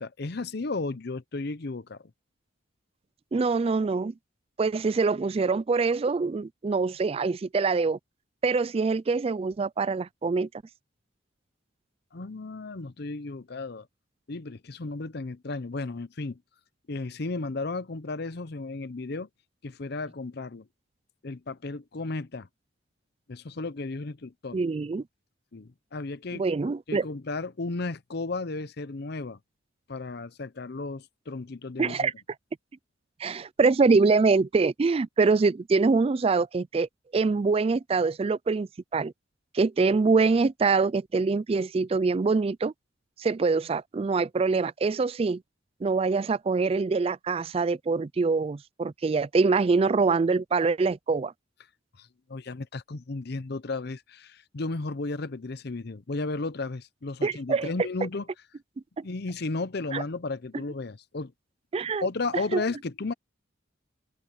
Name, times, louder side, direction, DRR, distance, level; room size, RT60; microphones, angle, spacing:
voice 1, 0.0-2.0 12.1-13.9 14.3-16.4 16.9-19.3 19.6-20.7 21.2-22.5 23.3-24.6 25.5-26.4 26.9-29.4 29.9-32.1 52.0-58.2 59.0-61.3 62.0-63.1, left 3 dB, 55° left, 0.7 m, -34 dB
voice 2, 3.3-4.1 4.6-8.0 8.4-10.5 24.5-25.0 26.3-27.1 31.8-32.1 33.2-39.1 39.5-42.7 43.2-45.4 45.8-51.3 57.2-57.7 59.0-59.1 59.9-60.0 61.7-62.1 62.3-62.6, right 4 dB, 30° right, 0.3 m, -24 dB
open air
head